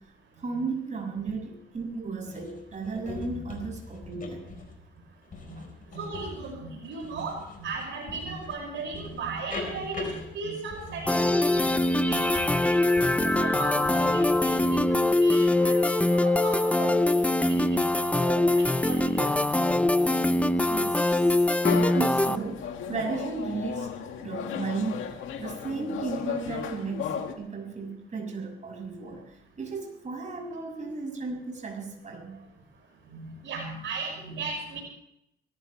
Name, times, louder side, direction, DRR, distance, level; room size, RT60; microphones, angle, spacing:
voice 1, 0.4-4.5 5.6-5.7 20.7-21.3 21.7-25.0 25.4-32.4, right 4 dB, 35° right, 0 dB, 6.2 m, -34 dB
sound 1, 2.2-14.9, left 4 dB, 45° left, 4.5 m, -43 dB
voice 2, 5.9-11.7 12.1-15.8 16.1-19.3 33.1-34.8, right 4 dB, 70° right, 1 dB, 5.9 m, -37 dB
sound 2, 11.1-22.4, left 2 dB, 5° left, 0.6 m, -23 dB
sound 3, 21.6-27.3, left 7 dB, 80° left, 2.0 m, -34 dB
24.5 x 15.0 x 3.2 m, 0.75 s
cardioid pair, 90°, 20 cm